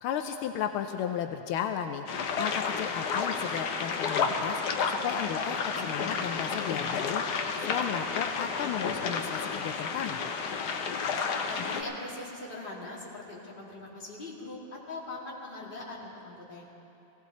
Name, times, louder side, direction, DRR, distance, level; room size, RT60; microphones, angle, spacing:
voice 1, 0.0-7.2 7.6-10.2, left 9 dB, 85° left, 6 dB, 1.4 m, -34 dB
sound 1, 2.1-11.8, left 5 dB, 60° left, 1.2 m, -31 dB
voice 2, 11.4-14.6 14.9-16.7, left 2 dB, 25° left, -5 dB, 2.4 m, -41 dB
17.5 x 17.0 x 4.1 m, 2.9 s
omnidirectional pair, 2.3 m